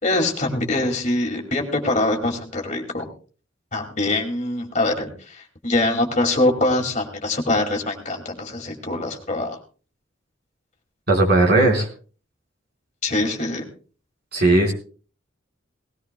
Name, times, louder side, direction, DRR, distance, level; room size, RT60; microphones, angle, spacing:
voice 1, 0.0-3.1 3.7-9.6 13.0-13.6, left 2 dB, 35° left, 3 dB, 2.3 m, -23 dB
voice 2, 11.1-11.9 14.3-14.7, right 2 dB, 50° right, 0 dB, 4.4 m, -17 dB
19.0 x 17.0 x 2.2 m, 0.39 s
head